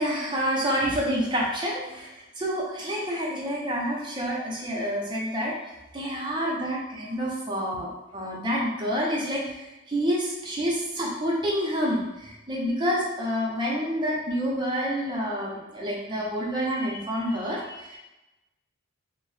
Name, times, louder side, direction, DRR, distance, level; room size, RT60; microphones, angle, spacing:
voice 1, 0.0-5.5 5.9-18.0, equal, 25° right, -4 dB, 0.6 m, -28 dB
2.7 x 2.0 x 3.1 m, 0.98 s
head